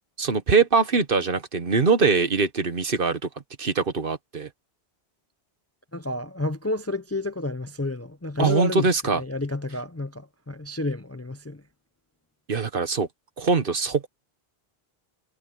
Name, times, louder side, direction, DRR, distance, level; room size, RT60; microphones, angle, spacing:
voice 1, 0.2-3.2 3.6-4.5 8.4-9.2 12.5-13.1 13.4-14.1, right 4 dB, 60° right, 1.5 m, -22 dB
voice 2, 5.9-11.6, left 2 dB, 20° left, 0.5 m, -30 dB
omnidirectional pair, 1.0 m